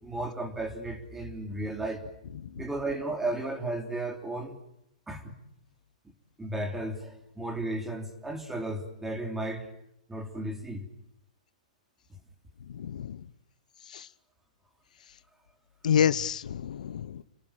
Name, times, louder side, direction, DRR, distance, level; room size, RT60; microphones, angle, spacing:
voice 1, 0.0-2.0 2.6-4.6 5.1-5.3 6.4-9.7 10.1-10.9, right 2 dB, 5° right, 5 dB, 3.4 m, -34 dB
voice 2, 12.7-13.2 13.9-14.1 15.8-17.2, left 8 dB, 75° left, 16 dB, 1.0 m, -28 dB
30.0 x 20.5 x 9.1 m, 0.81 s
hypercardioid pair, 155°, 4 cm